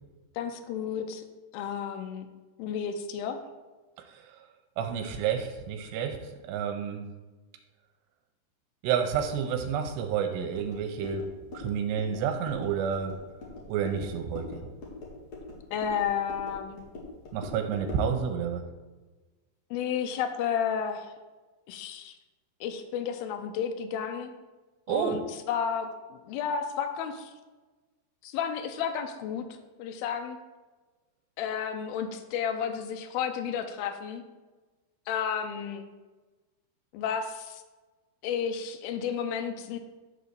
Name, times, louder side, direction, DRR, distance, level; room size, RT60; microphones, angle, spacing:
voice 1, 0.4-1.2 1.5-2.3 2.6-3.4 15.7-16.8 19.7-21.1 21.7-22.1 22.6-24.3 24.9-25.2 25.5-27.3 28.2-29.4 29.8-30.4 31.4-34.2 35.1-35.9 36.9-37.6 38.2-39.8, left 7 dB, 90° left, 6 dB, 2.2 m, -32 dB
voice 2, 4.8-7.1 8.8-13.2 13.7-14.7 17.3-18.6 24.9-25.2, right 7 dB, 80° right, 6 dB, 2.8 m, -30 dB
sound 1, 10.5-18.1, left 2 dB, 50° left, 2.3 m, -43 dB
11.0 x 3.9 x 6.8 m, 1.2 s
omnidirectional pair, 5.0 m